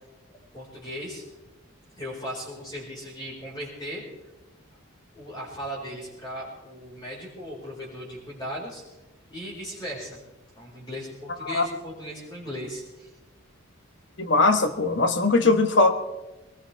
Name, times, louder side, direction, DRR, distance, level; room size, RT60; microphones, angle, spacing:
voice 1, 0.5-1.3 2.0-4.0 5.1-8.9 9.3-10.2 10.6-13.1, equal, 20° left, -5 dB, 4.7 m, -37 dB
voice 2, 14.2-15.9, left 3 dB, 55° left, 7 dB, 1.2 m, -20 dB
22.0 x 19.0 x 3.4 m, 1.1 s
head